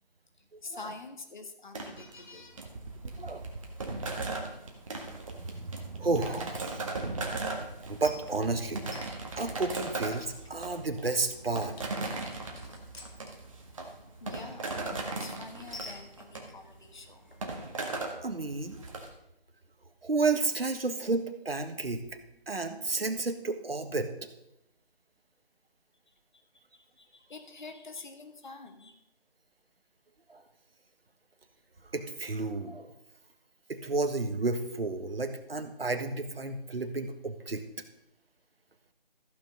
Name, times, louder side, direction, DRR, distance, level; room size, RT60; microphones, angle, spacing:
voice 1, 0.6-2.7 14.2-17.6 26.5-29.0, left 3 dB, 50° left, 7 dB, 1.6 m, -46 dB
sound 1, 1.7-19.1, right 3 dB, 35° right, 1.6 m, -38 dB
voice 2, 3.0-3.4 5.4-7.4 7.8-8.8 9.4-11.7 18.2-18.8 20.0-22.0 22.5-24.1 30.3-30.4 31.9-32.9 33.7-37.6, right 3 dB, 80° right, 8 dB, 1.6 m, -32 dB
sound 2, 7.3-18.1, left 2 dB, 80° left, 2.4 m, -53 dB
14.0 x 6.1 x 5.3 m, 0.85 s
figure-of-eight pair, 165°, 29 cm